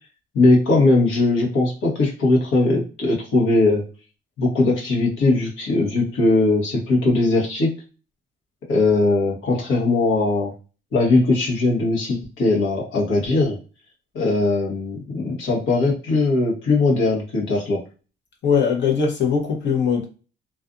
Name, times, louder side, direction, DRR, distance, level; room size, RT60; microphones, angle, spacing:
voice 1, 0.3-3.8 4.4-7.7 8.7-10.5 10.9-13.6 14.1-17.8, left 2 dB, 85° left, 1.2 m, -19 dB
voice 2, 18.4-20.0, left 6 dB, 65° left, 0.9 m, -20 dB
2.5 x 2.4 x 2.5 m
cardioid pair, 90°, 20 cm